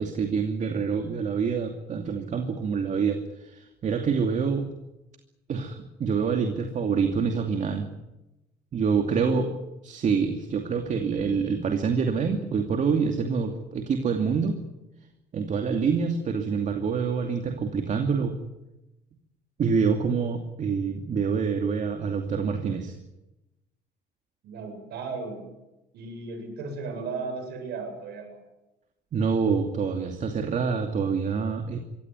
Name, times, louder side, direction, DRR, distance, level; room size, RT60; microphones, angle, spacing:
voice 1, 0.0-4.7 5.5-7.9 8.7-9.5 9.8-14.5 15.3-18.3 19.6-23.0 29.1-31.8, right 5 dB, 45° right, 5 dB, 2.6 m, -26 dB
voice 2, 24.4-25.5 25.9-28.4, right 4 dB, 75° right, 5 dB, 7.9 m, -35 dB
23.5 x 17.5 x 9.8 m, 0.95 s
cardioid pair, 110°, 17 cm